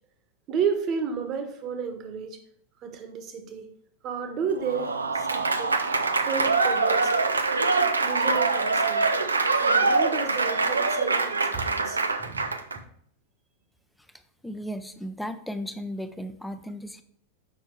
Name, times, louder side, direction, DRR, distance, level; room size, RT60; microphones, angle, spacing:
voice 1, 0.5-2.4 2.8-3.7 4.0-5.8 6.2-7.1 8.0-9.1 9.6-12.5, right 6 dB, 35° right, 6 dB, 1.3 m, -32 dB
Applause / Crowd, 4.6-12.8, right 3 dB, 75° right, 0.6 m, -24 dB
voice 2, 14.4-17.0, equal, 5° left, 9 dB, 0.7 m, -35 dB
7.5 x 5.6 x 4.6 m, 0.66 s
figure-of-eight pair, 90°, 0 cm